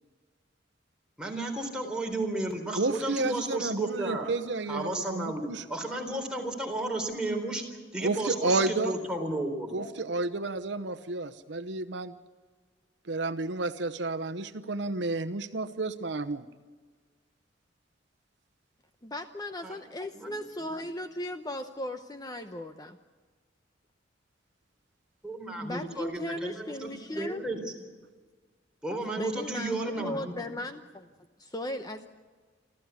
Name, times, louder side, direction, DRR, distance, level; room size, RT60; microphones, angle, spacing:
voice 1, 1.2-4.3 4.7-9.9 19.6-19.8 20.1-20.4 25.2-27.8 28.8-30.4, right 2 dB, 5° right, 0 dB, 3.9 m, -33 dB
voice 2, 2.7-5.6 8.0-8.9 9.7-12.1 13.1-16.4, right 3 dB, 70° right, 11 dB, 0.9 m, -31 dB
voice 3, 19.0-23.0 25.6-27.4 29.1-31.1 31.4-32.1, left 1 dB, 20° left, 7 dB, 0.9 m, -37 dB
28.5 x 14.0 x 8.3 m, 1.4 s
head